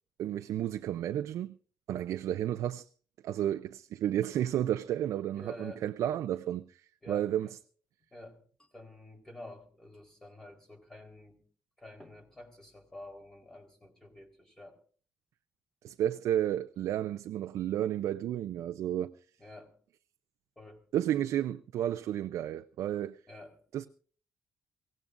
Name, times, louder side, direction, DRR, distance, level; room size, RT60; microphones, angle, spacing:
voice 1, 0.2-1.6 1.9-2.9 3.2-6.7 7.1-7.5 15.8-19.1 20.9-23.2 23.7-23.9, right 11 dB, 85° right, 0.6 m, -32 dB
voice 2, 5.4-5.9 7.0-7.5 8.1-11.4 11.8-14.8 19.4-19.8 20.6-20.8 23.3-23.6, left 1 dB, 10° left, 4.1 m, -49 dB
23.5 x 17.5 x 2.6 m
cardioid pair, 155°, 5 cm